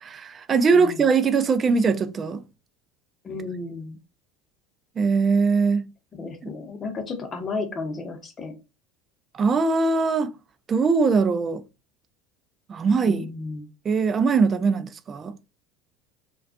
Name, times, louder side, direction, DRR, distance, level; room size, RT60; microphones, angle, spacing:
voice 1, 0.0-2.4 5.0-5.8 9.4-10.3 10.7-11.6 12.7-13.3 13.9-15.3, right 4 dB, 35° right, 0.3 m, -21 dB
voice 2, 3.2-4.0 6.1-8.5 13.0-13.7, left 3 dB, 35° left, 0.7 m, -33 dB
2.3 x 2.2 x 2.4 m
hypercardioid pair, 90°, 0 cm